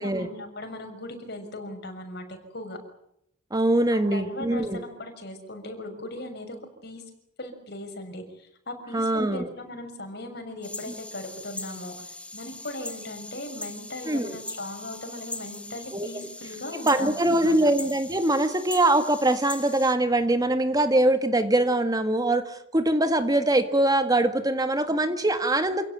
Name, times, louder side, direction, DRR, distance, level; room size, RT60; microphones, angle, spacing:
voice 1, 0.0-2.8 3.9-6.6 6.8-7.0 7.4-17.6, left 1 dB, 60° left, 6 dB, 6.3 m, -38 dB
voice 2, 3.5-4.8 8.9-9.4 10.9-11.0 14.1-14.4 15.9-16.3 16.7-25.9, right 1 dB, 20° right, 8 dB, 1.8 m, -23 dB
sound 1, 10.6-19.9, left 2 dB, 5° left, 1.5 m, -40 dB
28.0 x 17.0 x 9.3 m, 0.78 s
head